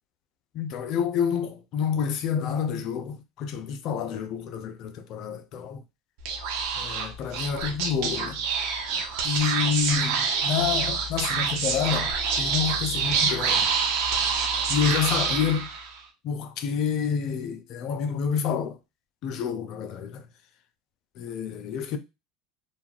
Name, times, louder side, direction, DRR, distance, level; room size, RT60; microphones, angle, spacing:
voice 1, 0.5-5.8 6.7-8.4 9.2-12.1 12.4-13.7 14.7-15.7 16.2-18.8 19.2-20.2 21.2-22.0, left 7 dB, 55° left, 0.4 m, -28 dB
Speech / Whispering, 6.2-16.0, right 5 dB, 70° right, 0.7 m, -27 dB
3.1 x 2.3 x 2.4 m
hypercardioid pair, 95°, 0 cm